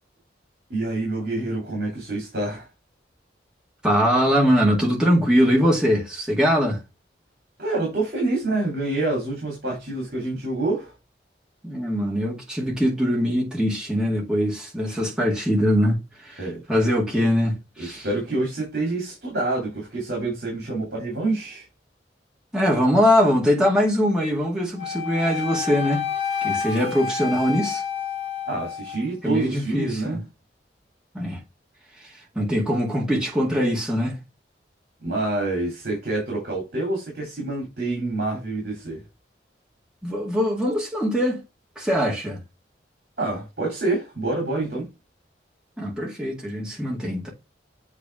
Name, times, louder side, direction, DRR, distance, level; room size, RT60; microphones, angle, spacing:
voice 1, 0.7-2.7 7.6-10.9 16.4-16.6 17.8-21.7 28.4-30.2 35.0-39.0 43.2-44.9, right 2 dB, 55° right, 3.0 m, -27 dB
voice 2, 3.8-6.8 11.6-16.0 16.2-16.4 16.7-18.1 22.5-26.1 26.4-27.8 29.2-30.2 31.1-31.4 32.4-34.2 40.0-41.4 41.8-42.4 45.8-47.3, equal, 5° right, 2.0 m, -22 dB
Wind instrument woodwind instrument, 24.8-29.1, left 7 dB, 35° left, 1.2 m, -29 dB
8.3 x 3.4 x 3.5 m
head